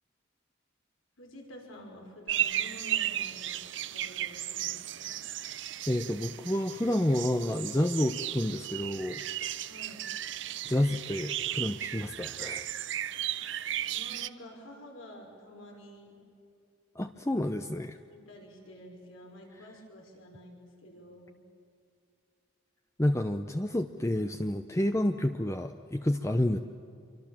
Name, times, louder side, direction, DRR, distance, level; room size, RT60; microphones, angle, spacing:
voice 1, 1.2-5.2 9.7-10.1 13.8-16.2 18.1-21.4, equal, 75° left, 1 dB, 5.9 m, -50 dB
sound 1, 2.3-14.3, right 12 dB, 60° right, 0.6 m, -35 dB
voice 2, 5.9-9.2 10.7-12.8 17.0-18.0 23.0-26.6, left 1 dB, 15° left, 7 dB, 0.6 m, -29 dB
28.0 x 24.5 x 7.4 m, 2.5 s
head